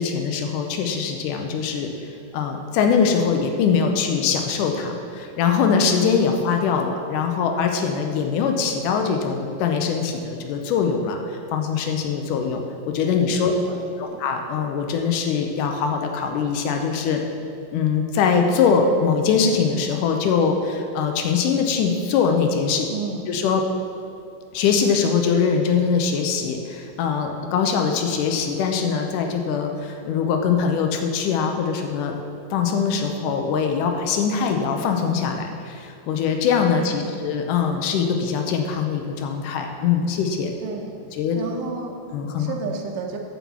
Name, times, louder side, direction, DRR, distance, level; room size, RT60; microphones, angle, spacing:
voice 1, 0.0-1.9 2.3-12.6 12.9-13.5 14.0-17.2 17.7-22.9 23.3-23.6 24.5-32.1 32.5-40.5 41.2-41.4 42.1-42.5, left 6 dB, 75° left, 4 dB, 2.0 m, -22 dB
voice 2, 13.5-14.2 22.9-23.3 37.0-37.1 40.6-40.9 41.3-41.9 42.4-43.2, right 5 dB, 70° right, 2 dB, 1.7 m, -32 dB
7.7 x 6.1 x 7.0 m, 2.7 s
omnidirectional pair, 4.2 m